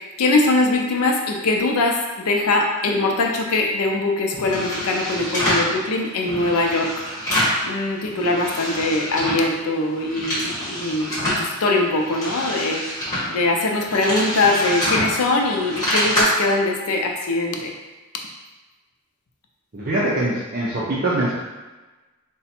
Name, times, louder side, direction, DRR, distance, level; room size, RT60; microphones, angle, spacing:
voice 1, 0.2-7.0 7.3-12.8 13.3-17.7, left 2 dB, 85° left, 2 dB, 0.5 m, -22 dB
sound 1, 4.3-5.7 6.2-7.6 8.0-9.5 9.9-11.4 11.9-16.2, equal, 15° left, 1.4 m, -26 dB
voice 2, 19.7-21.3, right 1 dB, 40° right, -7 dB, 0.6 m, -23 dB
3.9 x 2.2 x 4.2 m, 1.2 s
head